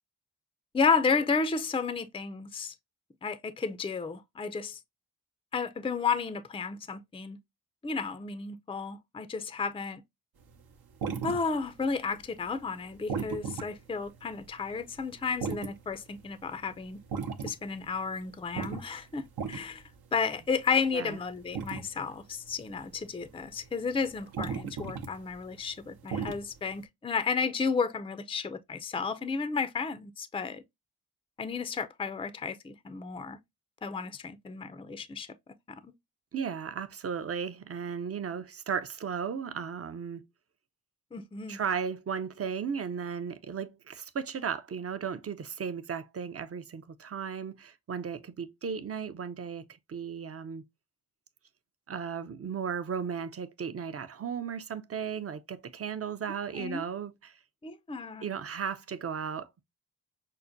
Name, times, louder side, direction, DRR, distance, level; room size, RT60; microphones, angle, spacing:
voice 1, 0.7-2.7 3.2-4.8 5.5-7.4 7.8-10.0 11.2-17.0 17.4-19.8 20.1-30.6 31.4-33.4 33.8-35.3 35.7-35.9 41.1-41.6 56.6-56.8 57.6-58.2, left 5 dB, 15° left, 0.4 m, -32 dB
sound 1, 10.5-11.9 12.2-26.8, right 6 dB, 70° right, 0.7 m, -38 dB
voice 2, 36.3-40.2 41.5-50.6 51.9-57.4 58.2-59.6, right 6 dB, 40° right, 0.5 m, -35 dB
5.6 x 2.1 x 2.5 m
cardioid pair, 40°, 39 cm